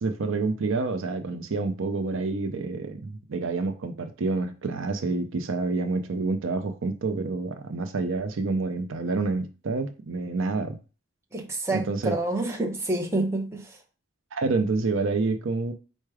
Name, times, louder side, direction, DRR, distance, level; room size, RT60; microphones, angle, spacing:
voice 1, 0.0-10.8 11.7-12.2 14.3-15.7, right 3 dB, 70° right, 0.5 m, -28 dB
voice 2, 11.3-13.8, right 2 dB, 10° right, 0.7 m, -28 dB
4.6 x 2.2 x 4.7 m
head